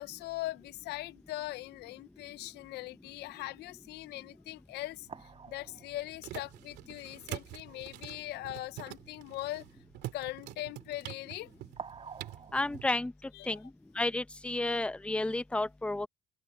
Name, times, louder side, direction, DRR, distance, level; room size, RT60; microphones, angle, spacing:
voice 1, 0.0-9.6 10.1-11.5 13.3-13.6, left 16 dB, 80° left, 0.7 m, -41 dB
sound 1, 4.0-4.1 4.6-4.7 5.1-7.4 7.7-7.8 8.1-8.3 11.8-12.8, right 6 dB, 35° right, 3.8 m, -49 dB
sound 2, 5.0-12.9, right 15 dB, 85° right, 2.3 m, -46 dB
voice 2, 12.5-13.1 13.5-13.6 14.0-16.1, left 2 dB, 5° left, 0.8 m, -31 dB
open air
cardioid pair, 110°, 17 cm